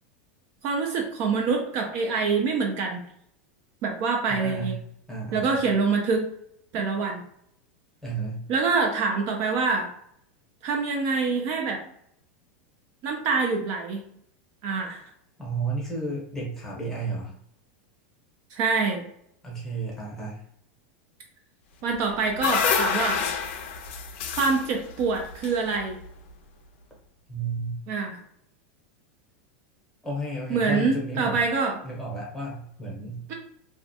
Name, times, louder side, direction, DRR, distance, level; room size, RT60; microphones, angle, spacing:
voice 1, 0.6-3.0 3.8-4.8 5.3-6.3 6.7-7.2 8.5-9.9 10.6-11.8 13.0-14.0 14.6-15.0 18.5-19.0 21.8-23.2 24.4-26.0 27.9-28.2 30.5-31.8 33.3-33.4, right 4 dB, 45° right, 2 dB, 0.4 m, -25 dB
voice 2, 4.3-4.8 5.1-5.7 8.0-8.4 15.4-17.3 19.4-20.4 27.3-27.7 30.0-31.4 31.8-33.2, right 2 dB, 5° left, -4 dB, 0.8 m, -32 dB
sound 1, 21.9-26.2, left 6 dB, 65° left, 0.4 m, -28 dB
2.3 x 2.2 x 2.7 m, 0.72 s
supercardioid pair, 145°, 7 cm